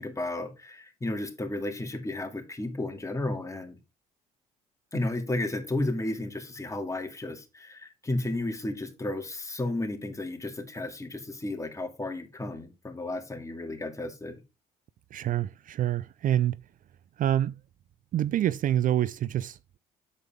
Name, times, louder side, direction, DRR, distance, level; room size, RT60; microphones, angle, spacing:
voice 1, 0.0-3.8 4.9-14.4, left 2 dB, 20° left, 2.3 m, -33 dB
voice 2, 15.1-16.6 17.2-17.5 18.1-19.8, right 11 dB, 50° right, 0.4 m, -27 dB
8.1 x 7.5 x 3.6 m
supercardioid pair, 70°, 17 cm